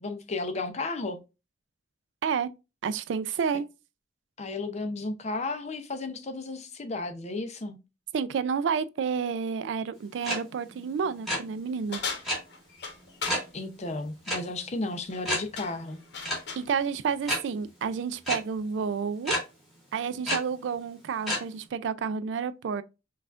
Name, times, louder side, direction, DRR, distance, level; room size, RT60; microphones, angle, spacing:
voice 1, 0.0-1.2 4.4-7.8 13.5-16.0, left 2 dB, 40° left, 0.6 m, -33 dB
voice 2, 2.8-3.6 8.1-12.0 16.6-19.3 19.9-22.8, right 6 dB, 75° right, 0.3 m, -30 dB
sound 1, 10.2-10.4 10.6-10.8 11.1-11.4 12.2-12.4 13.2-13.5 14.2-14.4 14.7-14.8 15.2-15.4 16.2-16.4 17.2-17.4 18.3-18.4 19.2-19.4 20.2-20.4 21.3-21.4, equal, ahead, 1.8 m, -28 dB
sound 2, 11.9-13.5 14.9-15.2 15.6-16.7, left 5 dB, 65° left, 1.0 m, -37 dB
5.4 x 2.4 x 2.4 m
head